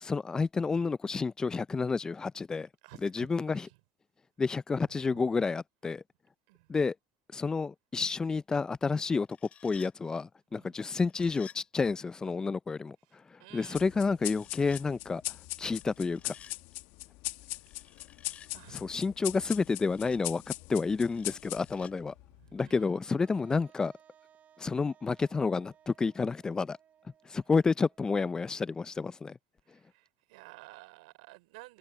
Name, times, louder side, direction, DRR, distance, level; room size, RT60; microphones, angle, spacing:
voice 1, 0.0-2.7 3.0-3.7 4.4-6.0 6.7-6.9 7.3-9.3 9.6-13.0 13.3-15.2 15.6-16.3 18.7-20.4 20.7-22.1 22.5-23.9 24.6-26.8 27.3-29.4, left 4 dB, 20° left, 0.4 m, -30 dB
voice 2, 2.8-3.8 4.9-5.3 6.5-6.7 10.5-10.8 13.4-13.8 17.9-18.0 18.5-18.9 22.4-23.0 29.7-31.8, right 23 dB, 85° right, 5.3 m, -53 dB
sound 1, 9.1-9.9 10.9-11.6 14.2-14.8 15.8-16.6 17.5-18.5 19.3-20.2 21.0-21.9, left 8 dB, 35° left, 3.6 m, -54 dB
sound 2, 13.7-22.6, left 21 dB, 70° left, 1.0 m, -40 dB
Wind instrument woodwind instrument, 23.2-29.0, right 9 dB, 40° right, 4.7 m, -63 dB
supercardioid pair, 105°, 4 cm